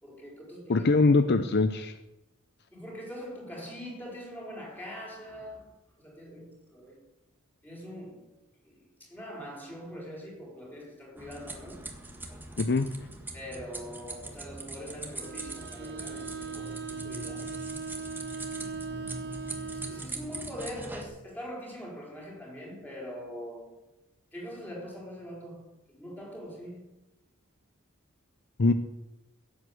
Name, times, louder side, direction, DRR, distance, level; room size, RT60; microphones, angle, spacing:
voice 1, 0.0-0.9 2.7-5.7 6.0-7.0 7.6-8.4 8.6-8.7 9.0-11.9 13.3-17.6 18.0-18.1 19.7-23.7 24.3-26.9, equal, 10° left, 4.7 m, -43 dB
voice 2, 0.7-1.9 12.6-12.9 28.6-28.7, left 3 dB, 50° left, 0.7 m, -22 dB
sound 1, 11.2-21.0, right 2 dB, 10° right, 1.7 m, -41 dB
Bowed string instrument, 15.2-20.1, right 5 dB, 50° right, 0.7 m, -39 dB
16.5 x 8.1 x 7.8 m
head